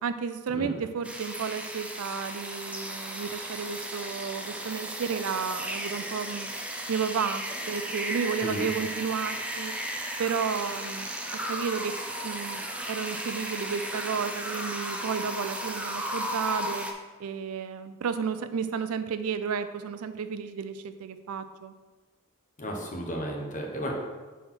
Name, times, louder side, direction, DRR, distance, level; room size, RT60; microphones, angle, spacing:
voice 1, 0.0-6.5 6.9-9.7 10.2-16.9 17.2-21.7, right 6 dB, 85° right, 11 dB, 0.4 m, -32 dB
sound 1, 1.0-16.9, right 1 dB, 5° right, 0.6 m, -35 dB
voice 2, 22.6-23.9, equal, 35° left, 0 dB, 1.1 m, -33 dB
5.6 x 4.2 x 5.9 m, 1.3 s
head